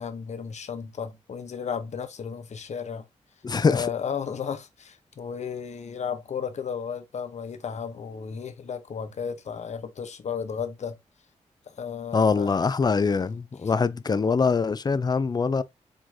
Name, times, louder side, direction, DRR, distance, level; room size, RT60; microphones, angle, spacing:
voice 1, 0.0-3.0 3.7-11.0 11.7-12.7, left 7 dB, 65° left, 0.9 m, -34 dB
voice 2, 3.4-3.9 12.1-15.6, left 5 dB, 30° left, 0.5 m, -23 dB
5.1 x 3.8 x 2.7 m
cardioid pair, 70°, 13 cm